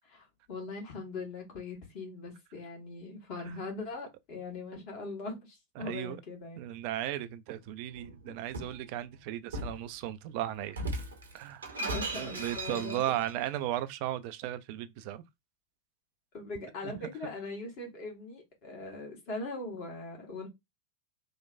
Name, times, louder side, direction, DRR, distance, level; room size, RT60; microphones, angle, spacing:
voice 1, 0.0-6.6 11.8-13.0 16.3-20.5, left 3 dB, 40° left, 1.4 m, -41 dB
voice 2, 5.8-6.2 6.6-10.8 11.3-11.7 12.1-15.2 16.8-16.9, right 13 dB, 45° right, 0.3 m, -36 dB
Shatter, 7.9-8.8 9.5-9.8 10.7-13.3, right 2 dB, 70° right, 0.8 m, -37 dB
3.1 x 2.2 x 2.5 m
figure-of-eight pair, 90°, 0 cm